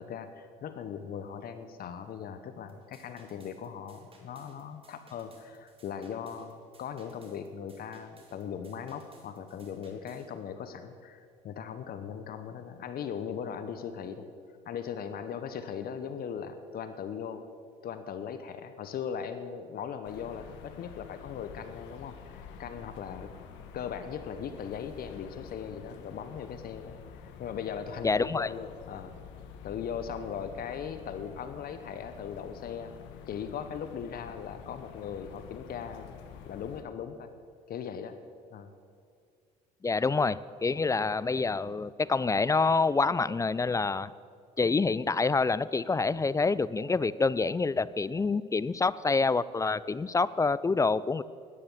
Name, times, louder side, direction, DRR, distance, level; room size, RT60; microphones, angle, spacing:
voice 1, 0.0-14.3 14.6-17.5 17.8-23.3 23.7-29.1 29.6-33.0 33.3-36.1 36.4-37.3 37.7-38.2 38.5-38.7, left 7 dB, 50° left, 10 dB, 1.1 m, -39 dB
sound 1, 2.7-10.3, right 3 dB, 30° right, 3.1 m, -60 dB
sound 2, 20.0-36.8, left 8 dB, 70° left, 1.3 m, -48 dB
voice 2, 28.0-28.5 39.8-44.1 44.6-51.2, left 4 dB, 15° left, 18 dB, 0.4 m, -27 dB
12.5 x 10.0 x 7.5 m, 2.2 s
hypercardioid pair, 70°, 19 cm